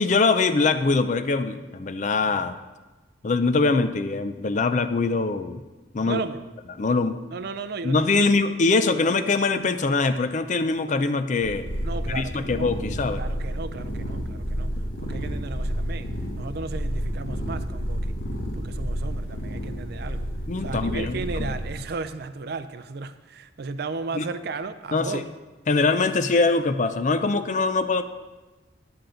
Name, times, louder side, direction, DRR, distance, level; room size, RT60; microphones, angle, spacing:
voice 1, 0.0-2.6 3.2-5.6 5.9-6.2 6.8-7.2 7.8-11.6 12.1-13.2 20.5-21.2 24.1-24.3 24.9-25.2 25.7-28.0, left 3 dB, 40° left, 0.5 m, -23 dB
voice 2, 6.0-6.4 7.3-8.4 11.8-12.7 13.1-14.7 15.0-16.1 16.4-18.2 18.6-20.3 20.6-25.3, right 4 dB, 55° right, 0.4 m, -35 dB
sound 1, 11.4-21.7, equal, 90° left, 1.8 m, -30 dB
10.5 x 8.8 x 3.8 m
head